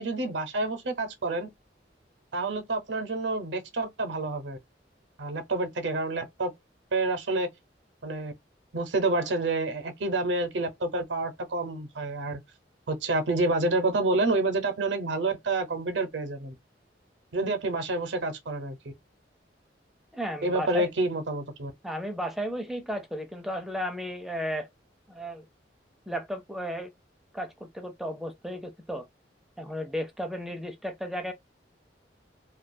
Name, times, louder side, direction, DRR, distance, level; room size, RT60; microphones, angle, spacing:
voice 1, 0.0-1.5 2.3-4.6 5.2-6.5 6.9-7.5 8.0-8.3 8.7-12.4 12.9-16.5 17.3-18.9 20.4-21.7, right 2 dB, 80° right, 0.7 m, -28 dB
voice 2, 20.1-20.9 21.8-24.7 25.1-25.5 26.1-26.9 27.3-29.1 29.6-31.3, equal, ahead, 0.4 m, -34 dB
2.3 x 2.3 x 2.5 m
head